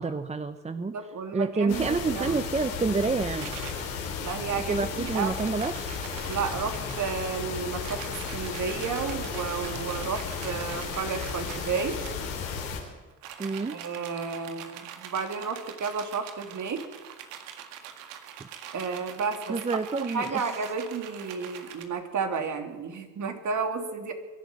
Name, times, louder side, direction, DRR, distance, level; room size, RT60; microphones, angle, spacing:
voice 1, 0.0-0.9 1.3-3.5 4.7-5.7 13.4-13.8 18.4-18.5 19.5-20.4, right 4 dB, 15° right, 11 dB, 0.9 m, -28 dB
voice 2, 0.9-2.4 4.2-5.3 6.2-12.0 13.7-16.9 18.7-19.6 19.9-24.1, right 5 dB, 50° right, 5 dB, 3.1 m, -32 dB
sound 1, 1.7-12.8, left 6 dB, 90° left, 4.2 m, -34 dB
sound 2, 3.4-3.9 5.1-7.3 7.7-12.2 13.1-21.8, right 9 dB, 85° right, 2.0 m, -44 dB
22.5 x 12.0 x 9.8 m, 1.3 s
hypercardioid pair, 65°, 38 cm